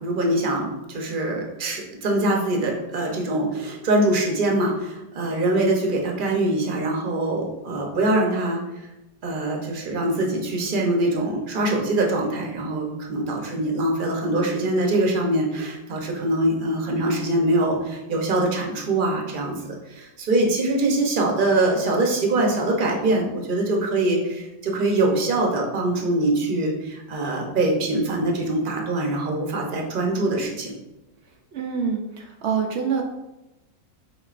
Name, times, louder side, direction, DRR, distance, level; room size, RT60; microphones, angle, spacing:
voice 1, 0.0-8.6 9.2-19.5 19.9-30.7, right 2 dB, 45° right, 0 dB, 0.6 m, -23 dB
voice 2, 31.5-33.0, right 6 dB, 85° right, 2 dB, 0.5 m, -26 dB
5.2 x 3.8 x 2.4 m, 0.96 s
omnidirectional pair, 1.7 m